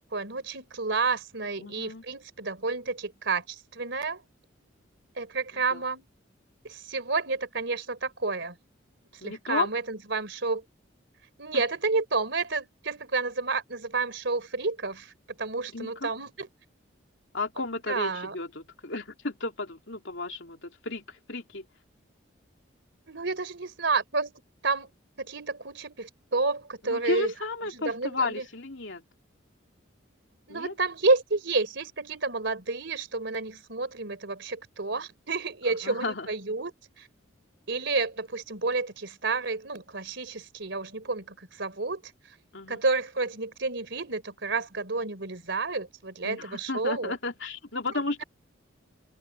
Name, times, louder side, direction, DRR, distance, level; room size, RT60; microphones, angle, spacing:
voice 1, 0.1-4.2 5.2-6.1 6.6-8.6 9.2-10.6 11.4-15.1 15.4-16.5 17.9-18.4 23.1-24.3 24.6-24.9 25.2-27.3 27.7-28.5 30.5-37.1 37.7-42.0 42.7-47.1, right 3 dB, 65° right, 3.7 m, -30 dB
voice 2, 1.6-2.0 5.7-5.8 9.2-9.7 11.5-11.6 15.7-16.1 17.3-21.6 26.8-29.0 30.5-30.7 35.7-36.3 42.5-42.8 46.2-48.2, left 3 dB, 70° left, 3.1 m, -33 dB
open air
head